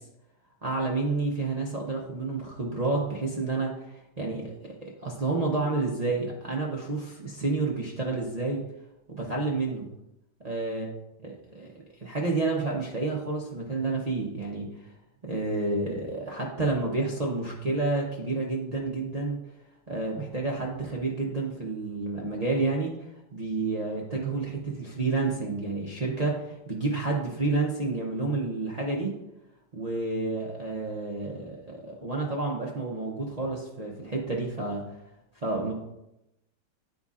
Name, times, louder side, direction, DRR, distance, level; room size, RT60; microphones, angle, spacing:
voice 1, 0.6-8.6 9.1-9.9 10.4-10.9 11.5-11.7 12.0-14.8 15.2-19.4 19.9-22.9 23.3-29.1 29.7-34.8 35.4-35.7, right 3 dB, 50° right, -2 dB, 0.4 m, -30 dB
11.5 x 4.0 x 2.4 m, 0.90 s
omnidirectional pair, 2.0 m